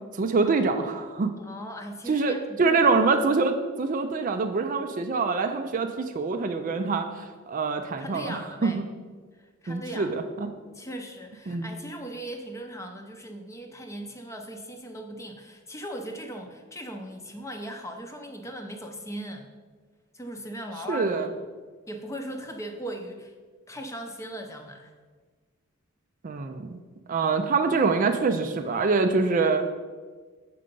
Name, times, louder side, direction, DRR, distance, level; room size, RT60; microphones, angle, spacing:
voice 1, 0.2-1.3 2.1-8.7 9.7-10.5 11.5-11.7 20.9-21.3 26.2-26.8 27.1-29.7, right 4 dB, 40° right, 7 dB, 0.4 m, -25 dB
voice 2, 1.4-2.9 8.0-8.8 9.4-10.2 10.7-19.5 20.1-21.3 21.9-23.3 23.7-24.9, equal, 15° left, 4 dB, 0.6 m, -38 dB
6.7 x 5.0 x 5.2 m, 1.5 s
head